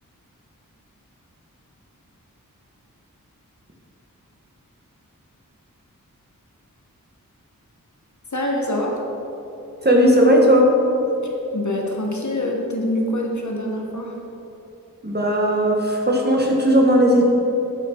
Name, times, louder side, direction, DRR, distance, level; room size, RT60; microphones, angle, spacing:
voice 1, 8.3-9.0 11.2-14.1, left 1 dB, 60° left, 0 dB, 1.3 m, -25 dB
voice 2, 9.8-10.7 15.0-17.3, equal, 30° right, -1 dB, 1.4 m, -16 dB
8.9 x 5.7 x 4.5 m, 2.9 s
wide cardioid pair, 55°, 34 cm